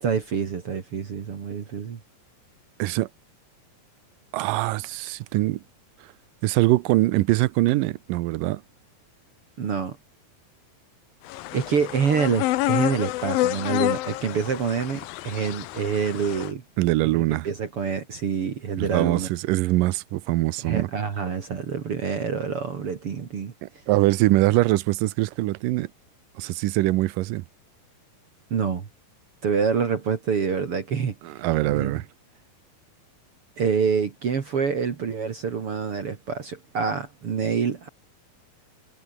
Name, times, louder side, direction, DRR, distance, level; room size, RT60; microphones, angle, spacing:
voice 1, 0.0-2.0 9.6-10.0 11.5-16.6 17.1-19.3 20.6-23.5 28.5-28.9 29.4-31.1 31.6-31.9 33.6-37.9, right 6 dB, 45° right, 2.5 m, -26 dB
voice 2, 4.3-5.6 6.4-8.6 16.8-17.5 18.8-20.9 23.6-25.9 26.4-27.4 31.2-32.0, right 18 dB, 75° right, 2.3 m, -23 dB
sound 1, 11.3-16.5, left 17 dB, 85° left, 2.6 m, -28 dB
omnidirectional pair, 4.1 m